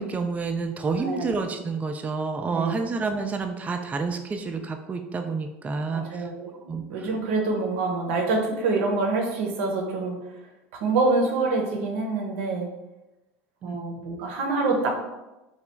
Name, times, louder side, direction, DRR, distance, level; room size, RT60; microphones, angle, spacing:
voice 1, 0.0-6.3 6.7-7.1 13.6-13.9, right 4 dB, 20° right, 5 dB, 0.3 m, -29 dB
voice 2, 1.0-1.3 2.5-2.8 5.9-10.2 10.8-12.7 13.6-15.0, right 3 dB, 75° right, 2 dB, 0.7 m, -26 dB
2.9 x 2.3 x 3.3 m, 1.0 s
hypercardioid pair, 85°, 7 cm